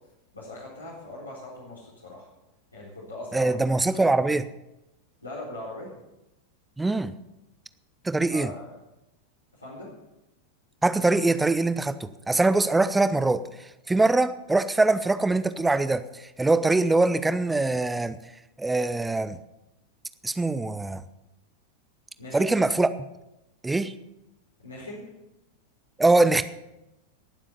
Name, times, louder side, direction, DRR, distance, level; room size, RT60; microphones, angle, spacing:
voice 1, 0.3-2.3 2.7-4.0 5.2-6.0 8.3-8.8 9.5-9.9 22.2-22.6 24.6-25.1, left 2 dB, 80° left, -5 dB, 4.0 m, -40 dB
voice 2, 3.3-4.5 6.8-7.1 8.0-8.5 10.8-13.5 13.9-18.2 18.6-19.4 20.2-21.0 22.3-22.9 23.6-23.9 26.0-26.4, right 2 dB, 10° right, 13 dB, 0.8 m, -23 dB
19.0 x 7.5 x 7.0 m, 0.94 s
figure-of-eight pair, 90°, 0 cm